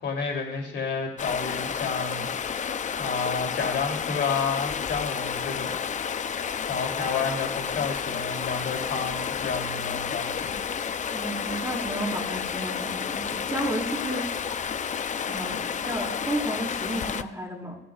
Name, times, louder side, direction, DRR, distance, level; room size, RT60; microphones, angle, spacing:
voice 1, 0.0-2.7 3.0-5.7 6.4-10.6, left 5 dB, 60° left, 0 dB, 3.1 m, -30 dB
Stream, 1.2-17.2, left 7 dB, 40° left, 0.5 m, -31 dB
voice 2, 11.1-14.5 15.3-17.8, right 1 dB, 15° right, -2 dB, 4.3 m, -32 dB
18.0 x 10.0 x 2.4 m, 0.92 s
cardioid pair, 90°, 20 cm